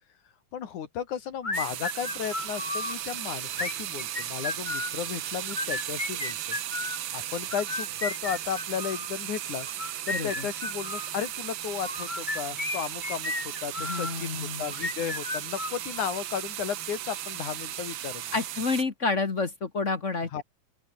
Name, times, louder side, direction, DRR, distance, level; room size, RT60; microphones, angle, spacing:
voice 1, 0.5-6.6 7.1-9.7 10.1-18.2 20.3-20.4, left 8 dB, 75° left, 3.4 m, -34 dB
sound 1, 1.4-2.9 3.5-5.0 5.4-7.0 7.5-9.1 9.7-11.1 11.8-14.1 14.7-16.2, left 2 dB, 15° left, 2.0 m, -34 dB
sound 2, 1.5-18.8, right 12 dB, 85° right, 1.1 m, -36 dB
voice 2, 10.1-10.5 13.8-14.7 18.3-20.4, left 4 dB, 40° left, 1.1 m, -29 dB
open air
omnidirectional pair, 3.6 m